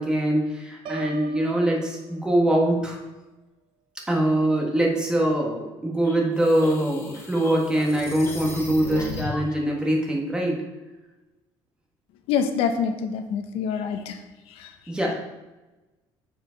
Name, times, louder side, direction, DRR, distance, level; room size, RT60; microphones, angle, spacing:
voice 1, 0.0-3.0 4.1-10.6 14.9-15.1, right 1 dB, 10° right, -1 dB, 1.2 m, -23 dB
Piano, 0.9-2.8, right 4 dB, 60° right, 0.6 m, -40 dB
sound 1, 6.0-9.5, left 2 dB, 30° left, 1.2 m, -36 dB
voice 2, 12.3-14.2 14.6-14.7, left 6 dB, 80° left, 7 dB, 0.6 m, -26 dB
7.2 x 4.7 x 3.8 m, 1.1 s
cardioid pair, 150°, 10 cm